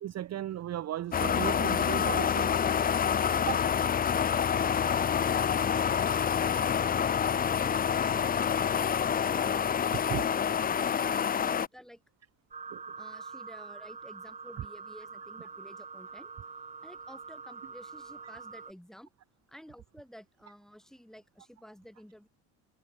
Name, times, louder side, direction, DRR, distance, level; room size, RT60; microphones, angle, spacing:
voice 1, 0.0-2.5 3.4-3.6 10.1-10.2 12.7-12.8, right 12 dB, 40° right, 0.8 m, -36 dB
sound 1, 1.1-11.7, left 8 dB, 20° left, 0.5 m, -27 dB
voice 2, 7.4-10.0 10.5-12.0 13.0-16.3 16.8-19.1 19.5-22.3, equal, ahead, 4.9 m, -52 dB
sound 2, 12.5-18.7, right 5 dB, 15° right, 1.0 m, -45 dB
cardioid pair, 120°, 41 cm